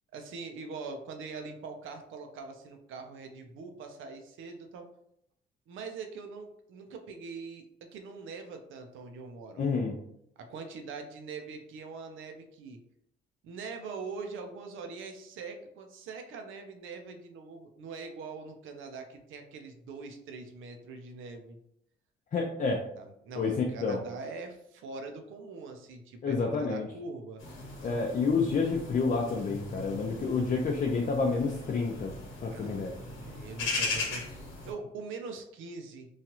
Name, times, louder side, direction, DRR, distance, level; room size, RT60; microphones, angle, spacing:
voice 1, 0.1-4.9 5.7-9.6 10.4-12.8 13.4-21.6 23.0-27.4 32.5-36.1, right 4 dB, 80° right, 5 dB, 0.6 m, -43 dB
voice 2, 9.6-9.9 22.3-22.8 23.4-24.0 26.2-26.9 27.8-32.1 32.4-32.9, left 4 dB, 40° left, 0 dB, 0.5 m, -29 dB
sound 1, 27.4-34.7, left 3 dB, 85° left, 1.1 m, -38 dB
3.1 x 2.4 x 2.9 m, 0.74 s
cardioid pair, 90°, 20 cm